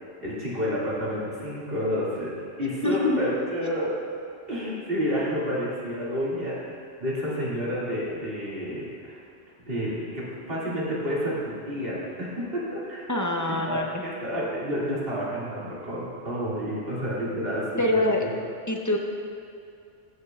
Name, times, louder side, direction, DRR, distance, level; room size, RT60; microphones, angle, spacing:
voice 1, 0.2-2.3 2.6-4.0 4.5-9.2 9.6-13.0 13.5-18.3, equal, 55° right, -8 dB, 2.6 m, -30 dB
voice 2, 2.8-3.2 13.1-13.9 17.8-18.2 18.7-19.0, left 2 dB, 20° left, 0 dB, 0.5 m, -24 dB
15.5 x 6.6 x 2.4 m, 2.5 s
omnidirectional pair, 1.2 m